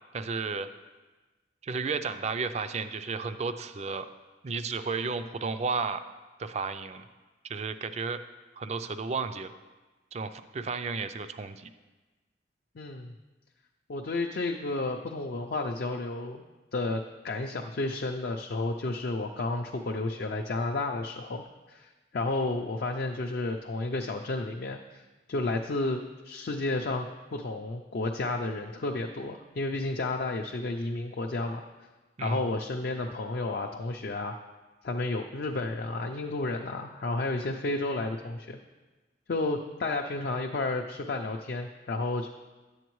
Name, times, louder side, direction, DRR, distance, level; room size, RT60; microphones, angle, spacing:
voice 1, 0.1-0.7 1.6-4.1 4.4-6.0 6.4-7.0 7.4-8.2 8.6-9.5 10.1-11.7 32.2-32.5, right 4 dB, 35° right, 10 dB, 0.4 m, -33 dB
voice 2, 12.8-13.1 13.9-16.4 16.7-21.4 21.7-25.0 25.3-27.1 27.3-31.6 32.2-34.4 34.8-38.6 39.3-42.3, left 2 dB, 55° left, 3 dB, 0.4 m, -32 dB
10.0 x 8.0 x 3.1 m, 1.2 s
head